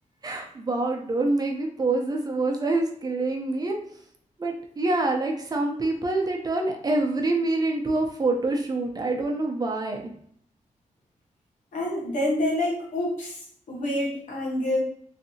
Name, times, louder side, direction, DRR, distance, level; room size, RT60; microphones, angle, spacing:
voice 1, 0.2-3.8 4.4-10.1, right 2 dB, 30° right, 1 dB, 0.6 m, -26 dB
voice 2, 11.7-13.4 13.7-14.8, left 1 dB, 80° left, -2 dB, 1.2 m, -27 dB
3.3 x 2.7 x 2.7 m, 0.64 s
wide cardioid pair, 120°, 13 cm